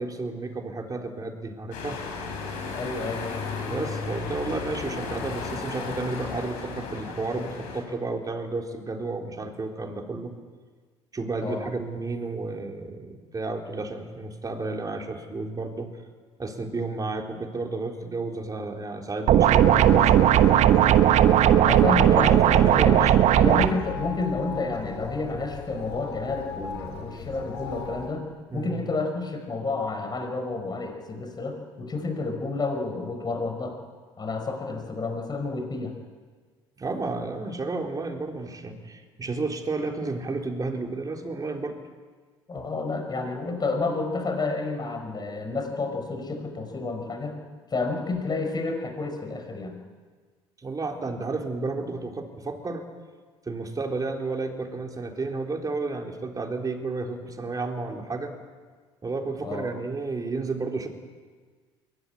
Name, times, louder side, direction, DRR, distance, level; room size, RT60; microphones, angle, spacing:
voice 1, 0.0-2.0 2.4-2.5 3.6-10.3 11.1-15.9 16.4-20.3 22.0-23.2 28.5-28.8 36.8-41.8 50.6-52.8 53.5-58.3 59.0-60.9, right 3 dB, 25° right, 2 dB, 4.0 m, -32 dB
sound 1, 1.7-7.8, left 4 dB, 70° left, 6.0 m, -34 dB
voice 2, 2.7-3.3 11.4-11.7 21.6-28.3 28.5-33.8 34.2-36.0 42.5-47.4 47.7-49.7 59.4-59.7, left 3 dB, 30° left, 4 dB, 5.2 m, -30 dB
sound 2, 19.3-23.7, right 11 dB, 55° right, 1.2 m, -17 dB
sound 3, 19.6-28.1, left 5 dB, 85° left, 3.4 m, -37 dB
23.0 x 16.0 x 9.9 m, 1.5 s
hypercardioid pair, 65°, 14 cm